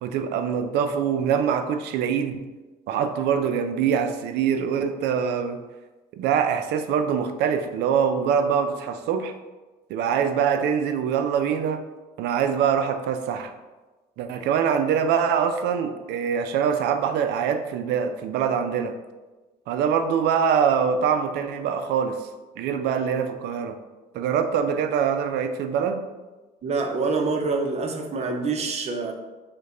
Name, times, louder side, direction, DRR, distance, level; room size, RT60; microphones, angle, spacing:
voice 1, 0.0-2.4 2.9-5.6 6.1-9.3 9.9-11.8 12.2-13.5 14.2-19.0 19.7-22.2 22.6-23.8 24.1-26.0, right 7 dB, 80° right, 8 dB, 0.4 m, -24 dB
voice 2, 26.6-29.1, right 4 dB, 40° right, 3 dB, 0.6 m, -26 dB
5.2 x 2.2 x 3.7 m, 1.2 s
cardioid pair, 110°, 17 cm